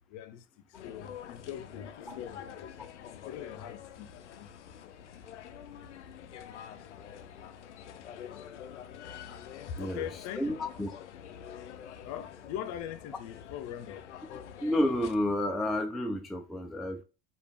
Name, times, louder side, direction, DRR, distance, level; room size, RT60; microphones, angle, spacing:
voice 1, 0.1-2.7 3.2-4.5 4.8-5.0 9.3-9.4 9.7-10.6 12.0-14.1, left 10 dB, 50° left, 0.7 m, -42 dB
sound 1, 0.7-15.1, left 9 dB, 85° left, 0.5 m, -47 dB
voice 2, 9.8-10.1 10.4-10.9 14.6-17.0, left 1 dB, ahead, 0.3 m, -30 dB
5.0 x 2.5 x 3.4 m
figure-of-eight pair, 70°, 34 cm